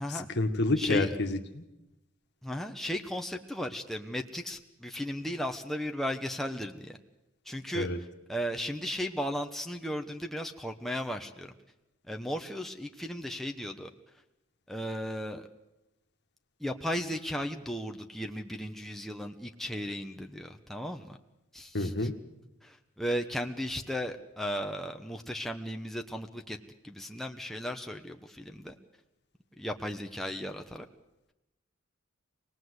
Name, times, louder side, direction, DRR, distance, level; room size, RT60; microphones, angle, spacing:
voice 1, 0.1-1.6 7.7-8.0 21.7-22.1, left 2 dB, 55° left, 7 dB, 1.7 m, -29 dB
voice 2, 0.8-1.1 2.4-7.0 7.4-7.9 8.3-11.5 12.1-13.9 14.7-15.5 16.6-21.2 21.5-22.1 22.6-26.6 26.8-28.7 29.6-30.9, equal, ahead, 3 dB, 1.0 m, -35 dB
25.5 x 19.0 x 8.1 m, 0.96 s
head